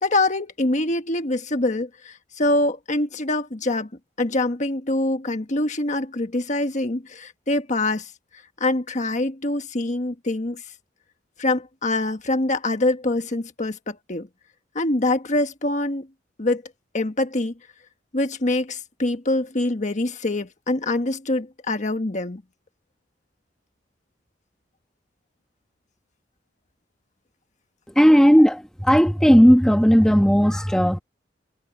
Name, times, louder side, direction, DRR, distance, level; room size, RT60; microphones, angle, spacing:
voice 1, 0.0-3.9 4.2-8.1 8.6-10.6 11.4-14.3 14.7-16.1 16.4-16.6 16.9-17.5 18.1-22.4, left 2 dB, 40° left, 1.4 m, -24 dB
voice 2, 28.0-31.0, equal, 5° left, 1.4 m, -15 dB
head